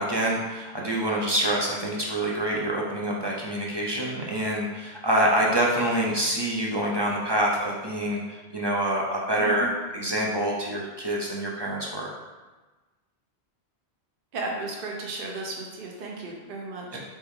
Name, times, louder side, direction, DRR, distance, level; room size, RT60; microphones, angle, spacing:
voice 1, 0.0-12.1 16.9-17.0, right 1 dB, 30° right, -3 dB, 0.5 m, -26 dB
voice 2, 9.4-9.7 14.3-17.0, right 2 dB, 60° right, -2 dB, 0.9 m, -34 dB
4.3 x 3.4 x 3.6 m, 1.2 s
omnidirectional pair, 1.1 m